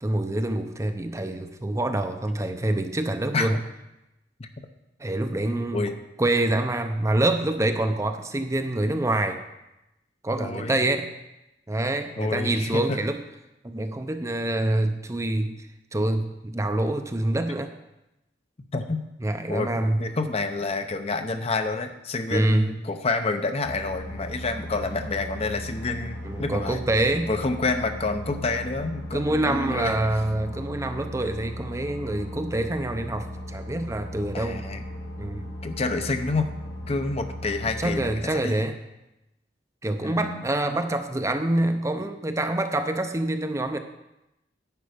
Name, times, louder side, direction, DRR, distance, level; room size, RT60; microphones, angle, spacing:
voice 1, 0.0-3.6 5.0-5.9 6.2-9.4 10.2-11.1 11.7-13.2 13.6-15.6 15.9-17.7 19.2-20.1 22.3-22.8 26.2-27.3 29.1-34.6 35.2-35.4 37.8-38.8 39.8-43.8, right 1 dB, 15° right, 7 dB, 0.6 m, -26 dB
voice 2, 10.4-10.8 12.2-13.0 18.7-19.0 19.5-26.8 27.3-29.9 34.3-34.8 35.6-36.5 36.9-38.6 40.0-40.4, left 3 dB, 35° left, 7 dB, 0.7 m, -28 dB
sound 1, 23.6-38.2, left 1 dB, 85° left, 1.6 m, -37 dB
10.5 x 8.0 x 5.1 m, 0.92 s
head